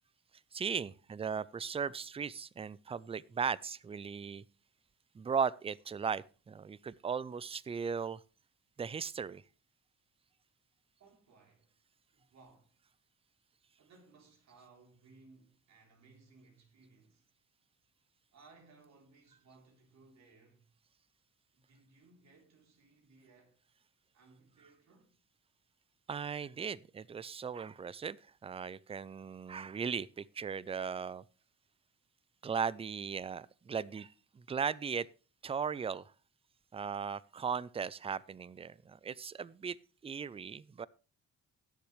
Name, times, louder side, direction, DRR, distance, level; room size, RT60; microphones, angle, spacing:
voice 1, 0.5-4.4 5.1-8.2 8.8-9.4 26.1-31.2 32.4-35.1 35.4-36.1 36.7-39.8 40.0-40.9, right 6 dB, 20° right, 0.4 m, -37 dB
voice 2, 11.0-11.7 12.1-12.7 13.8-17.3 18.3-20.7 21.5-23.6 24.1-25.2, right 3 dB, 60° right, 3.7 m, -62 dB
19.5 x 6.9 x 3.2 m
cardioid pair, 90°, 30 cm